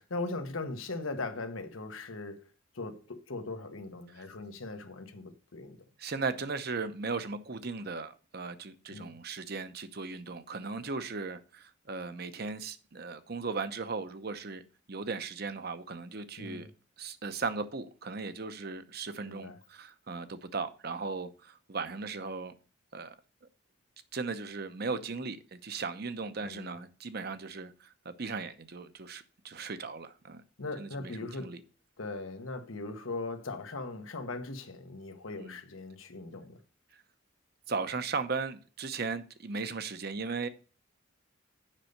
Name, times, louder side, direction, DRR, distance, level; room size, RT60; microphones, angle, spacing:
voice 1, 0.0-2.5 2.7-5.8 8.9-9.1 16.4-16.7 19.2-19.6 26.4-26.7 30.6-31.6 32.0-36.6, left 3 dB, 90° left, 1.2 m, -39 dB
voice 2, 6.0-14.6 14.9-16.7 17.0-22.5 22.9-23.1 24.1-30.4 30.8-31.6 35.4-35.6 36.9-37.0 37.7-40.5, right 4 dB, 50° right, 0.8 m, -37 dB
7.4 x 5.4 x 6.5 m
head